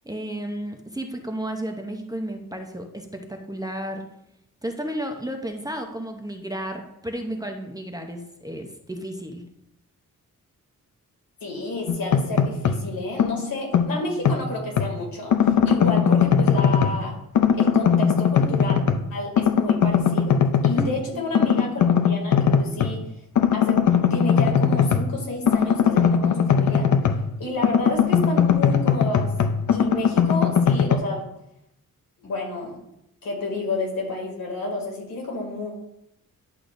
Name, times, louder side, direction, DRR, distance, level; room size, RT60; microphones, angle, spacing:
voice 1, 0.0-4.0 4.6-9.4 20.8-21.2, right 1 dB, 10° right, 3 dB, 0.6 m, -33 dB
voice 2, 11.4-17.2 17.5-18.8 19.1-23.0 23.5-23.8 24.1-26.9 27.4-29.3 29.7-31.2 32.2-32.8 33.2-35.7, left 2 dB, 80° left, 0 dB, 2.5 m, -30 dB
sound 1, 11.9-12.9 13.2-14.9 15.3-17.1 17.3-19.1 19.4-20.9 21.3-23.0 23.3-27.3 27.6-31.0, left 7 dB, 60° left, 0.6 m, -20 dB
11.0 x 6.6 x 2.6 m, 0.82 s
wide cardioid pair, 170°, 34 cm